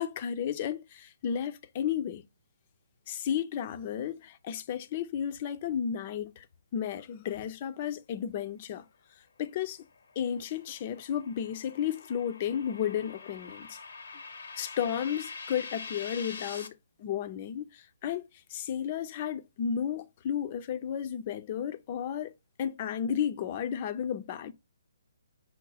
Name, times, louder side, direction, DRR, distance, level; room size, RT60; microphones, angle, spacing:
voice 1, 0.0-2.2 3.1-6.4 6.7-8.8 9.4-9.8 10.2-13.8 14.6-16.7 17.0-22.3 22.6-24.5, left 9 dB, 35° left, 0.5 m, -33 dB
sound 1, 9.9-16.7, left 4 dB, 70° left, 0.7 m, -45 dB
5.5 x 2.0 x 4.0 m
hypercardioid pair, 150°, 0 cm